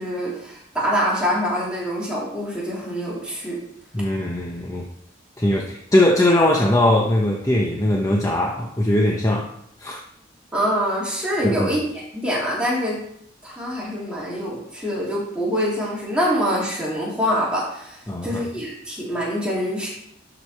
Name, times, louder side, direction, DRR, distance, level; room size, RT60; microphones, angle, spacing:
voice 1, 0.0-3.6 10.5-13.0 13.4-19.9, equal, 5° right, -6 dB, 3.1 m, -25 dB
voice 2, 3.9-4.9 5.4-9.5 9.8-10.0 11.4-11.8 18.1-18.4, left 1 dB, 15° left, 0 dB, 0.7 m, -20 dB
12.0 x 5.1 x 4.5 m, 0.71 s
head